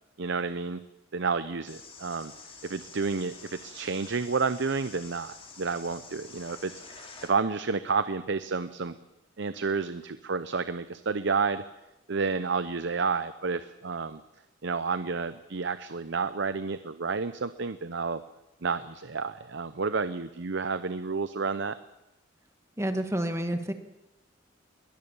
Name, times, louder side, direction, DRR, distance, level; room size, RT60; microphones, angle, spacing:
voice 1, 0.2-0.8 1.1-2.3 2.6-9.0 9.4-11.6 12.1-14.2 14.6-18.2 18.6-21.8, right 4 dB, 65° right, 12 dB, 0.8 m, -30 dB
sound 1, 1.7-7.3, left 4 dB, 30° left, 3.6 m, -48 dB
voice 2, 22.8-23.7, right 1 dB, 15° right, 7 dB, 1.7 m, -29 dB
22.0 x 19.5 x 7.2 m, 0.94 s
head